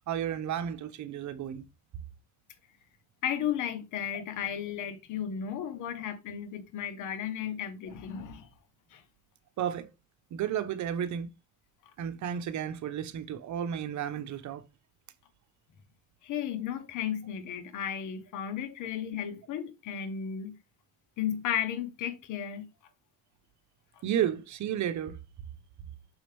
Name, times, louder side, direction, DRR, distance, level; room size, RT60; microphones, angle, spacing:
voice 1, 0.1-1.7 9.6-9.9 10.3-11.3 12.0-14.6 24.0-25.2, right 9 dB, 70° right, 1.0 m, -32 dB
voice 2, 3.2-8.5 8.9-9.0 16.2-20.6 21.2-22.7, left 9 dB, 85° left, 1.2 m, -34 dB
6.3 x 4.9 x 3.4 m
cardioid pair, 90°, 30 cm